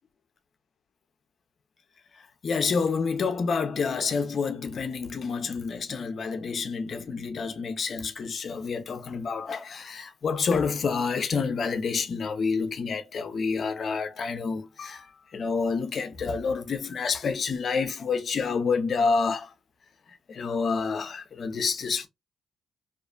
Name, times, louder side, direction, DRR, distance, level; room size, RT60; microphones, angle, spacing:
voice 1, 2.4-15.1 15.3-19.5 20.3-22.1, left 5 dB, 60° left, 0.5 m, -28 dB
2.5 x 2.4 x 2.2 m
supercardioid pair, 55°, 0 cm